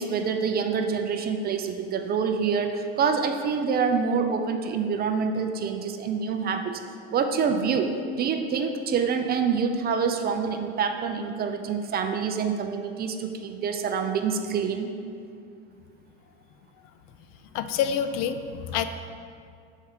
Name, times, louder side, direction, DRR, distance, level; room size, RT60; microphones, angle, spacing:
voice 1, 0.0-6.8 7.1-14.9, right 6 dB, 30° right, 6 dB, 0.4 m, -26 dB
voice 2, 17.5-18.8, left 8 dB, 55° left, 10 dB, 0.4 m, -27 dB
6.3 x 4.5 x 3.6 m, 2.3 s
supercardioid pair, 95°, 31 cm